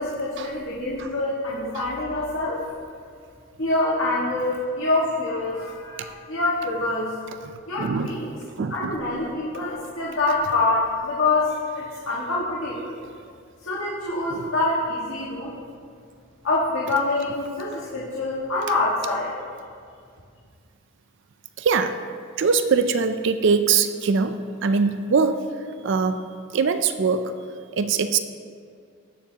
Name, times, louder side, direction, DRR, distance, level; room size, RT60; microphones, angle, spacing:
voice 1, 0.0-2.6 3.6-7.1 7.7-8.3 8.7-12.9 13.6-15.6 16.4-19.3, left 2 dB, 70° left, -6 dB, 1.6 m, -25 dB
voice 2, 7.4-8.2 8.6-9.0 10.4-10.5 14.3-14.5 21.6-22.0 22.4-26.3 26.5-27.3 27.7-28.2, right 5 dB, 55° right, 9 dB, 0.4 m, -23 dB
19.0 x 7.2 x 2.9 m, 2.2 s
head